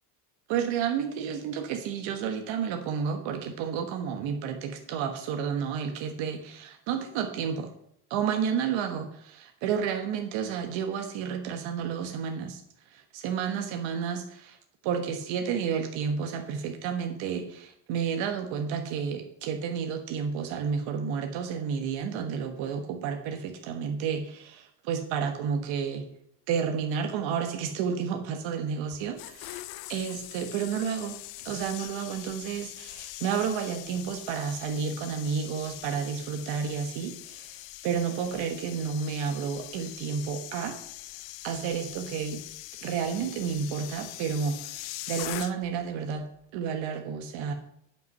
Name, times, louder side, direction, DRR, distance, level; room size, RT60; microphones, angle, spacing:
voice 1, 0.5-7.7 8.1-12.6 12.9-14.6 14.8-26.1 26.5-29.6 29.9-31.2 31.4-40.7 41.4-42.4 42.8-47.5, right 7 dB, 85° right, 4 dB, 1.3 m, -31 dB
sound 1, 28.9-45.9 46.1-46.4, left 17 dB, 80° left, 0.7 m, -42 dB
9.0 x 8.2 x 5.5 m, 0.73 s
cardioid pair, 175°, 44 cm